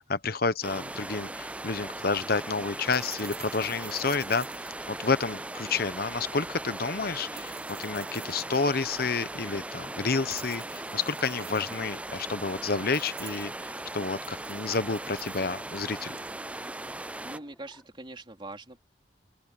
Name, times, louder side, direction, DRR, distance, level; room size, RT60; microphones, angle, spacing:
voice 1, 0.0-4.5 4.9-7.5 7.8-16.1, left 4 dB, 55° left, 1.0 m, -30 dB
sound 1, 0.6-17.4, right 2 dB, 5° right, 0.4 m, -38 dB
sound 2, 1.9-16.4, right 14 dB, 65° right, 6.6 m, -50 dB
sound 3, 2.2-3.1 4.5-4.7 6.1-6.4 7.7-8.5 9.8-10.5 11.4-12.1 13.0-14.1 15.2-16.1 17.2-17.8, left 1 dB, 10° left, 4.2 m, -57 dB
voice 2, 17.0-18.8, right 2 dB, 30° right, 3.8 m, -43 dB
open air
head